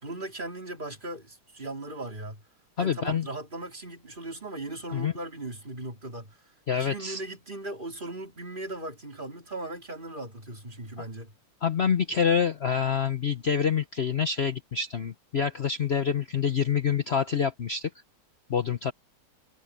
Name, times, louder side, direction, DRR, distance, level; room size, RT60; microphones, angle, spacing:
voice 1, 0.0-2.4 2.8-6.4 6.7-11.3, right 2 dB, 20° right, 3.0 m, -38 dB
voice 2, 2.8-3.3 4.9-5.1 6.7-7.2 11.6-17.9 18.5-18.9, left 7 dB, 60° left, 0.6 m, -26 dB
omnidirectional pair, 2.4 m